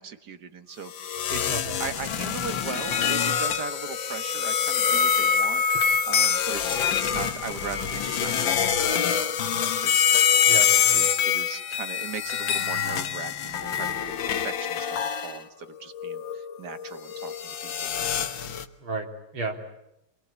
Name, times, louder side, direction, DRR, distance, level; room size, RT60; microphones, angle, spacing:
voice 1, 0.0-1.4 1.8-17.9, right 6 dB, 55° right, 9 dB, 2.1 m, -39 dB
sound 1, 0.9-15.4 15.9-18.6, left 7 dB, 70° left, 1.9 m, -25 dB
voice 2, 10.5-11.0 18.8-19.8, right 3 dB, 85° right, 3 dB, 4.2 m, -33 dB
27.5 x 22.0 x 8.4 m, 0.86 s
omnidirectional pair, 2.2 m